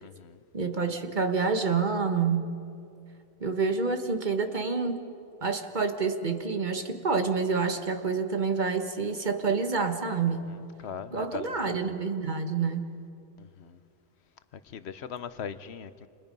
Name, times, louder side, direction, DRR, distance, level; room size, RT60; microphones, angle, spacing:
voice 1, 0.0-0.4 10.8-11.6 13.4-13.8 14.7-16.1, left 7 dB, 85° left, 13 dB, 1.1 m, -40 dB
voice 2, 0.5-2.5 3.4-5.1 5.4-10.5 11.1-12.9, right 5 dB, 45° right, 7 dB, 1.6 m, -28 dB
29.5 x 27.5 x 5.4 m, 2.5 s
omnidirectional pair, 1.1 m